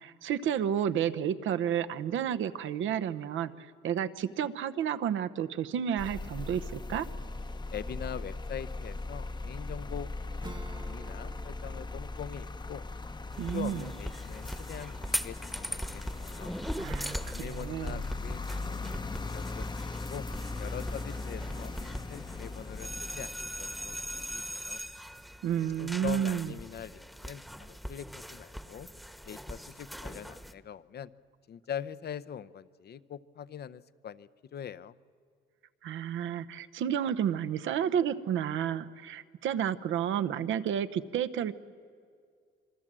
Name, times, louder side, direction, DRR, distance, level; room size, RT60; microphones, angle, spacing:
voice 1, 0.0-7.1 13.4-13.9 16.8-18.0 25.4-26.5 35.8-41.5, right 9 dB, 80° right, 11 dB, 1.0 m, -31 dB
sound 1, 6.0-24.5, left 3 dB, 20° left, 0.8 m, -39 dB
voice 2, 7.7-12.8 13.5-16.5 17.3-18.9 19.3-19.8 20.1-20.3 20.6-21.7 22.1-24.8 25.8-28.9 29.2-31.1 31.5-35.0, left 9 dB, 55° left, 16 dB, 0.7 m, -43 dB
Acoustic guitar / Strum, 10.4-16.4, right 3 dB, 20° right, 1.2 m, -53 dB
sound 2, 13.3-30.5, equal, ahead, 1.1 m, -40 dB
26.0 x 24.0 x 7.5 m, 2.2 s
cardioid pair, 90°, 20 cm